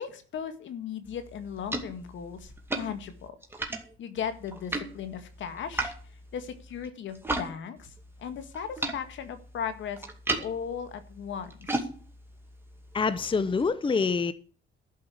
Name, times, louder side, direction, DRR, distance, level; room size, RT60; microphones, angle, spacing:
voice 1, 0.0-3.3 4.0-5.9 6.3-7.9 8.2-10.1 10.4-11.9, left 7 dB, 70° left, 1.9 m, -37 dB
sound 1, 1.0-7.5 7.8-13.7, right 2 dB, 10° right, 2.3 m, -37 dB
voice 2, 12.9-14.3, left 5 dB, 25° left, 0.8 m, -26 dB
12.0 x 5.6 x 8.3 m
cardioid pair, 90°, 20 cm